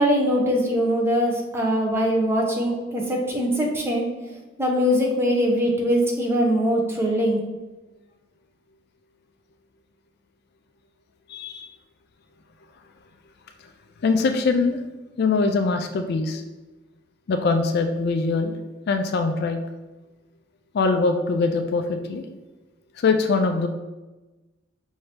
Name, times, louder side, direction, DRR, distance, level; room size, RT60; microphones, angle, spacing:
voice 1, 0.0-4.1 4.6-7.4, equal, 10° right, -1 dB, 0.7 m, -22 dB
voice 2, 11.3-11.7 14.0-14.8 15.2-16.4 17.3-18.6 18.9-19.6 20.7-22.3 23.0-23.7, left 4 dB, 55° left, 6 dB, 0.3 m, -22 dB
5.6 x 2.7 x 3.3 m, 1.1 s
head